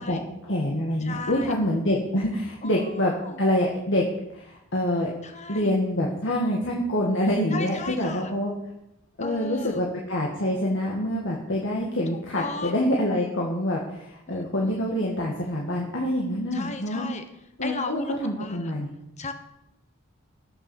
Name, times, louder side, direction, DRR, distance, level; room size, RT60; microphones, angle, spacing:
voice 1, 0.0-4.1 4.3-5.1 5.5-8.5 9.2-17.1 17.6-18.9, left 1 dB, 60° left, -2 dB, 2.2 m, -26 dB
voice 2, 1.0-1.5 2.6-2.7 3.0-3.4 5.2-5.7 7.5-8.3 9.2-9.8 12.4-12.7 14.3-14.7 16.5-17.2 17.6-18.7 19.2-19.3, left 3 dB, 35° left, 7 dB, 1.2 m, -36 dB
17.5 x 7.3 x 7.2 m, 0.87 s
head